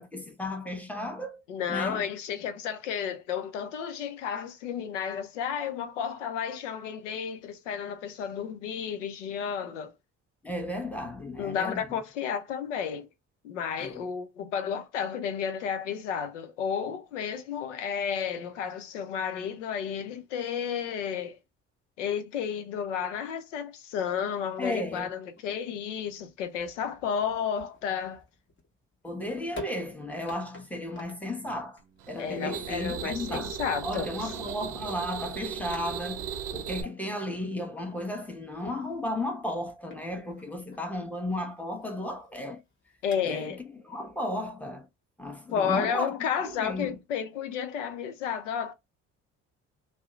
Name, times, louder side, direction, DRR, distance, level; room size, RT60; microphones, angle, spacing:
voice 1, 0.0-1.4 1.7-2.0 10.4-11.9 13.8-14.0 24.6-25.1 29.0-31.8 32.1-33.5 33.8-42.6 43.2-44.9 45.2-46.1 46.4-47.0, left 1 dB, 5° left, 0.9 m, -34 dB
voice 2, 1.5-9.9 11.4-13.1 13.4-21.4 22.0-28.2 32.2-34.3 43.0-43.6 45.5-48.7, left 7 dB, 85° left, 0.6 m, -32 dB
sound 1, 24.8-43.7, left 2 dB, 30° left, 1.1 m, -50 dB
sound 2, 32.0-36.8, right 8 dB, 65° right, 0.6 m, -37 dB
2.7 x 2.0 x 2.3 m
hypercardioid pair, 50°, 36 cm